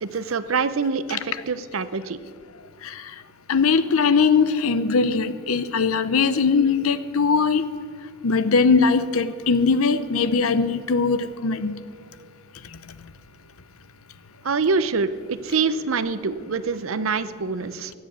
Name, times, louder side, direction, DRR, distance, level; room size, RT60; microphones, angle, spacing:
voice 1, 0.0-2.2 14.4-17.9, right 4 dB, 70° right, 14 dB, 0.6 m, -25 dB
voice 2, 3.5-7.7 8.2-11.8, left 5 dB, 80° left, 14 dB, 0.7 m, -20 dB
15.5 x 7.6 x 8.4 m, 2.3 s
head